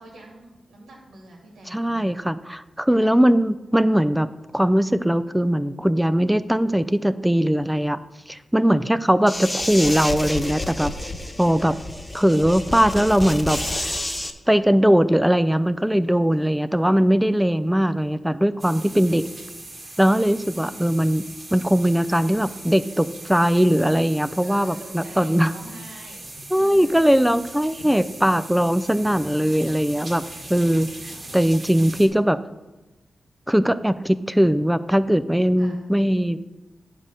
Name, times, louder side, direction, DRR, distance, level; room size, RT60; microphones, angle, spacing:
voice 1, 0.0-2.2 2.9-3.2 8.7-9.1 11.5-11.8 18.1-18.4 20.6-21.1 24.4-26.3 26.5-26.9 27.8-27.9 29.6-29.8 35.6-35.8, right 1 dB, 85° right, -2 dB, 2.2 m, -45 dB
voice 2, 1.7-4.3 4.5-8.0 8.3-10.9 11.4-11.7 12.1-14.0 14.5-19.3 20.0-21.2 21.5-25.5 26.5-30.2 30.5-32.4 33.5-36.4, equal, 5° right, 14 dB, 0.4 m, -20 dB
sound 1, 9.3-14.3, left 1 dB, 15° left, 0.8 m, -29 dB
sound 2, 18.6-32.1, right 2 dB, 45° right, 1.9 m, -40 dB
9.2 x 3.7 x 6.5 m, 1.1 s
cardioid pair, 60°, 0 cm